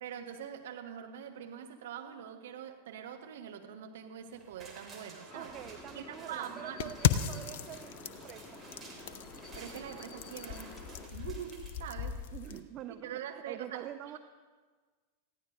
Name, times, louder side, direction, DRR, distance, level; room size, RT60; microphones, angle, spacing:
voice 1, 0.0-5.5 5.9-7.0 9.5-10.8 11.1-12.2 13.0-13.8, right 9 dB, 60° right, 4 dB, 1.2 m, -44 dB
sound 1, 4.3-12.4 12.8-12.9, right 3 dB, 15° right, 2.9 m, -55 dB
sound 2, 5.3-11.1, left 2 dB, 15° left, 1.6 m, -50 dB
voice 2, 5.3-8.6 12.3-14.2, right 11 dB, 35° right, 9 dB, 0.5 m, -46 dB
sound 3, 6.8-12.6, left 10 dB, 50° left, 0.6 m, -36 dB
19.5 x 14.5 x 2.6 m, 1.4 s
figure-of-eight pair, 90°, 0 cm